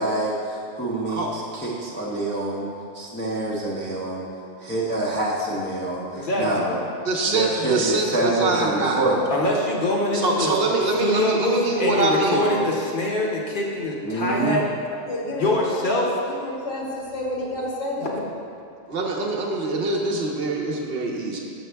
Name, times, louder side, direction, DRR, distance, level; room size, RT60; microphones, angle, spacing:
voice 1, 0.0-2.7 2.9-4.3 4.6-6.8 7.3-9.2 14.0-14.6, right 2 dB, 10° left, -7 dB, 0.5 m, -26 dB
voice 2, 6.2-6.7 9.3-14.8 15.3-16.1, left 1 dB, 50° left, -2 dB, 0.9 m, -24 dB
voice 3, 7.1-9.0 10.1-12.7 18.9-21.4, right 2 dB, 55° right, 0 dB, 0.9 m, -24 dB
voice 4, 15.1-18.2, left 1 dB, 75° left, -4 dB, 1.5 m, -30 dB
6.2 x 6.2 x 3.4 m, 2.5 s
omnidirectional pair, 1.2 m